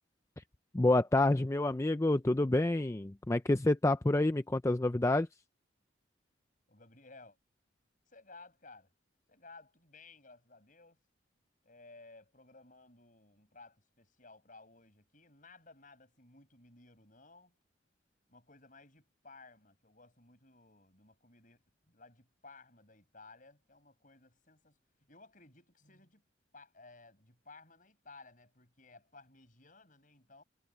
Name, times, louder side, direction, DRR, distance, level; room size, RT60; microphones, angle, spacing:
voice 1, 0.7-5.3, left 2 dB, 15° left, 0.4 m, -28 dB
voice 2, 6.7-7.4 8.1-8.9 9.3-11.0 11.6-17.5 18.3-24.8 25.1-26.2 26.5-30.4, left 3 dB, 45° left, 7.6 m, -57 dB
head